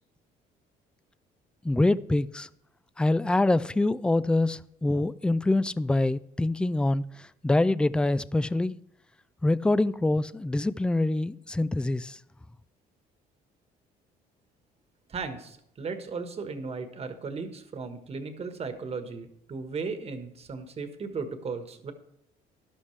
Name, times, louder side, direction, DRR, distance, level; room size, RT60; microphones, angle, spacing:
voice 1, 1.6-2.5 3.0-8.7 9.4-12.2, left 2 dB, 5° left, 0.3 m, -25 dB
voice 2, 15.1-21.9, right 4 dB, 35° right, 1.4 m, -36 dB
12.5 x 11.0 x 3.3 m
cardioid pair, 110°, 17 cm